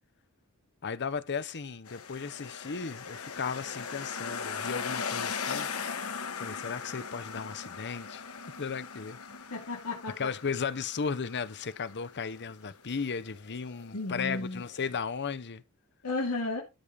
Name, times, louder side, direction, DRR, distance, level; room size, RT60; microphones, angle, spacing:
voice 1, 0.8-5.7 6.4-8.2 8.6-9.2 10.2-15.6, left 5 dB, 50° left, 0.8 m, -35 dB
sound 1, 1.9-15.0, left 6 dB, 70° left, 1.5 m, -39 dB
voice 2, 9.5-10.3 13.9-14.6 16.0-16.6, left 2 dB, 85° left, 2.6 m, -33 dB
13.0 x 5.5 x 4.9 m
head